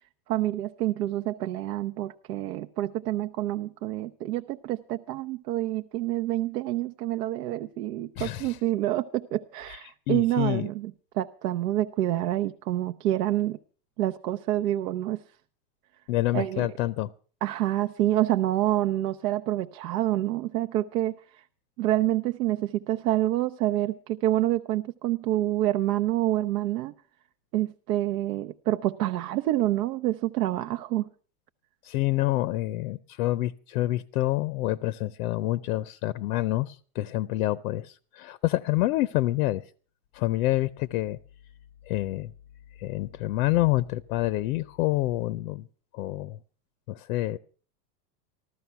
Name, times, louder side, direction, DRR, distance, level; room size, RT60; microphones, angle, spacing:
voice 1, 0.3-13.6 14.0-15.2 16.3-16.7 17.4-21.4 21.8-26.9 27.5-31.1, right 14 dB, 75° right, 0.8 m, -27 dB
voice 2, 8.2-8.6 9.7-9.8 10.1-10.7 16.1-17.1 31.8-39.7 40.1-41.2 41.9-42.3 42.8-45.7 45.9-46.4 46.9-47.4, left 16 dB, 65° left, 0.6 m, -27 dB
15.0 x 13.0 x 5.7 m
supercardioid pair, 155°, 48 cm